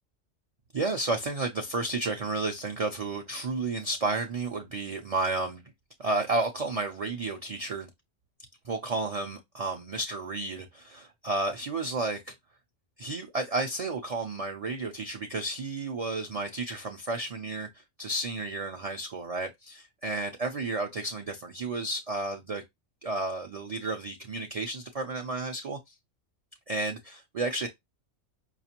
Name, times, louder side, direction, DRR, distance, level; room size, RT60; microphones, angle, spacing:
voice 1, 0.7-5.6 6.0-7.9 8.6-12.3 13.0-22.6 23.0-25.9 26.7-27.7, right 3 dB, 65° right, 0.3 m, -32 dB
5.0 x 2.3 x 2.8 m
omnidirectional pair, 1.3 m